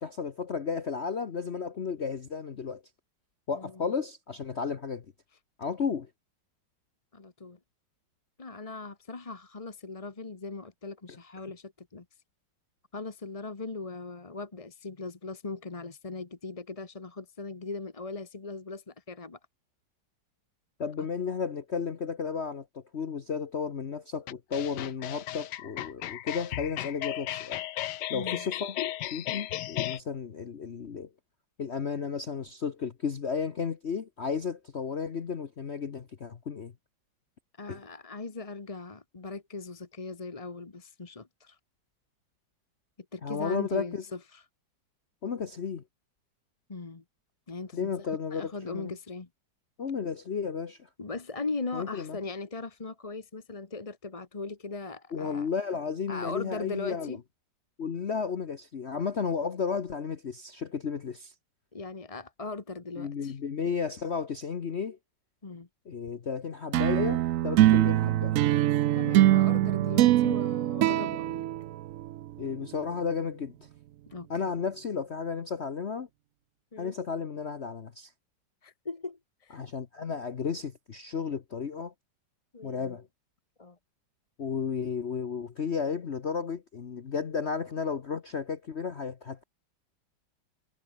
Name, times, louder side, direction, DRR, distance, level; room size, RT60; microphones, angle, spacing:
voice 1, 0.0-2.8 3.5-5.0 5.6-6.1 20.8-27.6 28.1-28.8 29.1-31.1 31.6-36.7 37.7-37.8 43.2-44.0 45.2-45.8 47.7-48.9 49.8-50.9 51.7-52.2 55.1-57.2 57.8-61.3 63.0-65.0 65.9-68.4 72.4-73.5 74.3-76.1 76.8-78.1 79.5-81.9 82.6-83.1 84.4-89.4, left 6 dB, 40° left, 1.2 m, -33 dB
voice 2, 3.5-3.9 7.1-7.6 8.4-12.0 12.9-19.4 21.0-21.1 28.1-28.5 37.6-41.6 43.1-44.4 46.7-47.0 47.5-49.3 51.0-55.5 56.1-57.2 61.7-63.4 65.4-65.7 68.9-71.5 74.1-74.3 76.7-76.9 78.6-79.6 82.5-83.0 83.6-83.8, left 3 dB, 25° left, 1.1 m, -39 dB
sound 1, 24.3-30.0, left 13 dB, 75° left, 1.3 m, -35 dB
sound 2, 66.7-72.3, right 14 dB, 80° right, 0.7 m, -23 dB
omnidirectional pair, 2.0 m